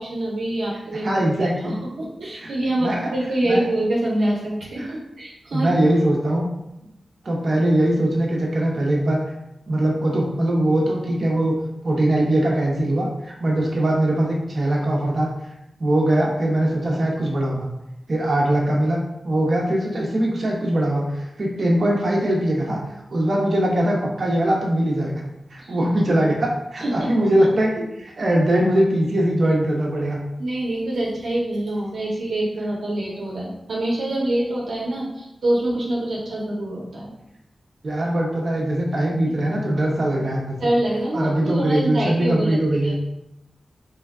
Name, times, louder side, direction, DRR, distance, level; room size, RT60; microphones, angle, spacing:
voice 1, 0.0-5.7 25.6-25.7 26.8-27.1 30.4-37.1 40.6-42.9, right 1 dB, 90° right, -4 dB, 0.7 m, -25 dB
voice 2, 1.0-1.7 2.3-2.5 2.8-3.1 3.5-3.6 4.8-4.9 5.5-6.5 7.2-9.2 9.7-11.5 11.8-15.3 15.8-17.7 18.1-19.0 19.2-22.8 23.1-25.2 25.5-30.2 37.8-40.7 41.1-42.9, right 1 dB, 50° right, -2 dB, 0.8 m, -21 dB
3.2 x 2.2 x 3.5 m, 0.88 s
wide cardioid pair, 140°, 0 cm